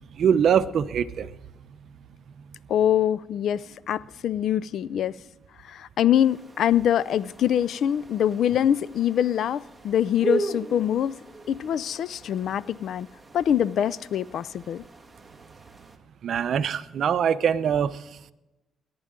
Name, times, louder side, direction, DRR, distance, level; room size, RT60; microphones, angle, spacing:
voice 1, 0.2-1.3 16.2-18.0, right 8 dB, 60° right, 0.7 m, -23 dB
voice 2, 2.7-5.1 5.6-11.2 11.5-13.1 13.3-14.8, left 10 dB, 70° left, 0.4 m, -24 dB
sound 1, 6.1-16.0, right 3 dB, 10° right, 1.7 m, -38 dB
21.5 x 10.5 x 3.7 m
cardioid pair, 90°, 0 cm